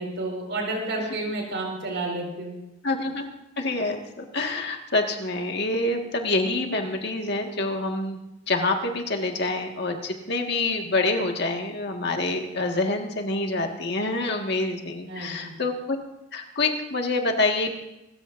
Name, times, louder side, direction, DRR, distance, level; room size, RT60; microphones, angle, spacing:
voice 1, 0.0-2.6 15.1-15.6, right 2 dB, 60° right, 0 dB, 4.9 m, -30 dB
voice 2, 2.8-3.3 3.6-8.2 8.5-16.0 16.3-17.8, left 2 dB, 55° left, 3 dB, 1.8 m, -26 dB
27.0 x 14.0 x 2.6 m, 0.91 s
head